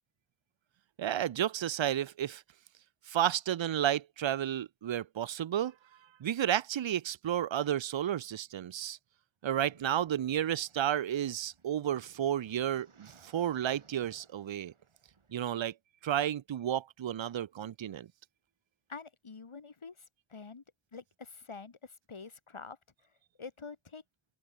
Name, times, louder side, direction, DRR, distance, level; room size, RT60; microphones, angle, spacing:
voice 1, 1.0-2.4 3.1-5.7 6.2-9.0 9.4-14.7 15.3-15.7 16.0-18.1, right 10 dB, 70° right, 0.7 m, -32 dB
sound 1, 9.6-15.4, right 4 dB, 85° right, 6.0 m, -62 dB
voice 2, 18.9-20.6 20.9-22.8 23.4-24.0, left 4 dB, 85° left, 5.7 m, -47 dB
open air
wide cardioid pair, 75°, 48 cm